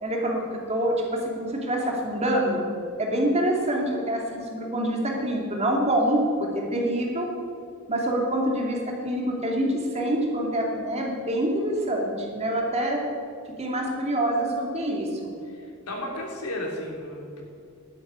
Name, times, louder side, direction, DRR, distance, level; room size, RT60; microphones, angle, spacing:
voice 1, 0.0-2.6 3.0-7.3 7.9-8.8 9.0-13.0 13.6-15.3, right 1 dB, 30° right, -1 dB, 2.7 m, -26 dB
voice 2, 15.4-17.4, left 1 dB, 85° left, 0 dB, 3.3 m, -34 dB
12.0 x 8.8 x 9.4 m, 2.4 s
head